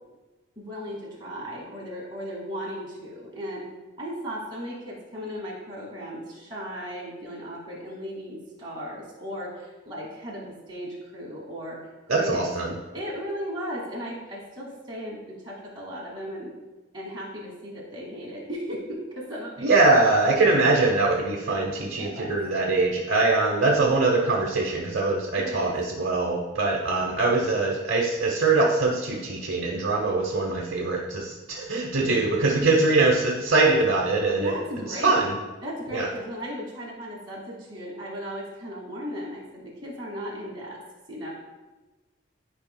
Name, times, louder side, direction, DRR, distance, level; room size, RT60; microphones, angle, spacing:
voice 1, 0.6-3.7 4.0-11.8 12.1-12.4 12.9-16.5 16.9-19.9 20.3-20.7 21.4-21.7 22.0-22.4 25.3-25.7 34.4-35.3 35.6-40.8 41.1-41.3, equal, 25° right, -6 dB, 2.1 m, -36 dB
voice 2, 12.1-12.7 19.6-34.5 34.9-35.4 35.9-36.1, right 3 dB, 70° right, -2 dB, 0.9 m, -22 dB
12.0 x 5.0 x 2.2 m, 1.2 s
head